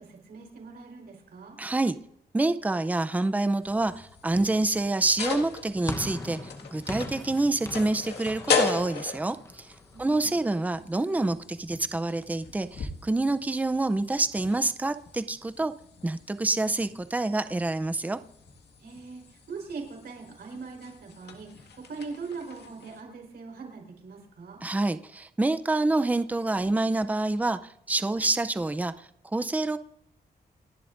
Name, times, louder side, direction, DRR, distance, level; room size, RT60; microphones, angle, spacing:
voice 1, 0.0-1.6 9.9-10.4 18.8-24.6, right 4 dB, 75° right, 1 dB, 4.3 m, -41 dB
voice 2, 1.6-2.0 2.3-9.7 10.0-15.7 16.0-18.2 24.6-29.8, right 2 dB, 10° right, 11 dB, 0.5 m, -27 dB
sound 1, 3.6-23.0, left 5 dB, 90° left, 1.9 m, -37 dB
sound 2, 5.9-10.3, left 2 dB, 15° left, 1.0 m, -40 dB
28.5 x 11.5 x 2.6 m, 0.76 s
wide cardioid pair, 165°, 17 cm